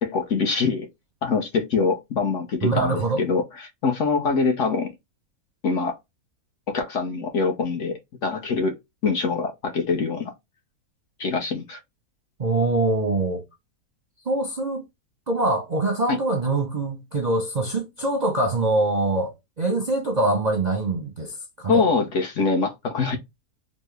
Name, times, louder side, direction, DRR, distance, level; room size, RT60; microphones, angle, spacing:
voice 1, 0.0-0.9 1.2-4.9 5.6-6.0 6.7-8.7 9.0-10.3 11.2-11.8 16.1-16.2 21.7-23.2, left 4 dB, 60° left, 0.9 m, -24 dB
voice 2, 2.6-3.2 12.4-13.4 14.3-14.8 15.3-21.8, right 2 dB, 40° right, 0.6 m, -24 dB
4.2 x 2.0 x 3.1 m
omnidirectional pair, 1.6 m